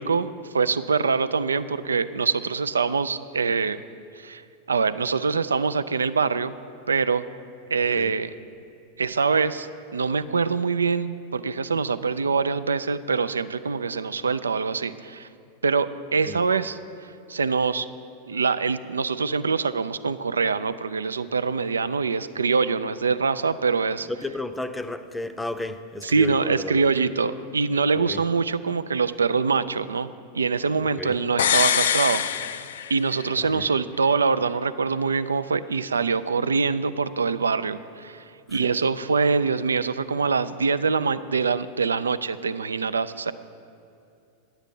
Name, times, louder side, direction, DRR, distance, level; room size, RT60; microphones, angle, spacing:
voice 1, 0.0-3.8 4.2-4.4 4.7-6.5 6.9-7.2 7.7-8.3 9.0-9.7 9.9-15.3 15.6-16.8 17.3-17.9 18.3-24.1 26.0-30.1 30.3-32.2 32.9-43.3, right 5 dB, 80° right, 14 dB, 0.3 m, -24 dB
voice 2, 24.1-26.9 27.9-28.3 31.0-31.2 33.4-33.7 38.5-38.7, left 2 dB, 5° left, 10 dB, 0.6 m, -33 dB
sound 1, 31.4-33.3 33.6-33.7, left 9 dB, 70° left, 0.3 m, -24 dB
10.5 x 8.0 x 5.3 m, 2.6 s
figure-of-eight pair, 90°, 0 cm